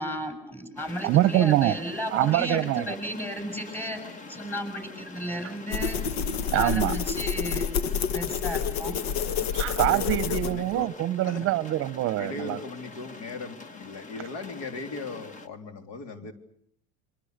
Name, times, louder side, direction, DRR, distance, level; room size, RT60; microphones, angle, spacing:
voice 1, 0.0-4.0 4.3-6.0 6.5-7.7 8.1-9.0, equal, 5° left, 7 dB, 7.3 m, -34 dB
sound 1, 0.8-15.5, left 3 dB, 25° left, 1.5 m, -45 dB
voice 2, 1.0-1.7 2.1-2.9 6.5-6.9 9.5-12.6, right 15 dB, 45° right, 15 dB, 0.9 m, -24 dB
sound 2, 5.7-10.8, left 7 dB, 75° left, 1.5 m, -28 dB
voice 3, 9.8-10.9 11.2-11.5 12.2-16.3, left 3 dB, 55° left, 6 dB, 3.6 m, -38 dB
27.5 x 24.5 x 6.7 m, 0.69 s
supercardioid pair, 125°, 32 cm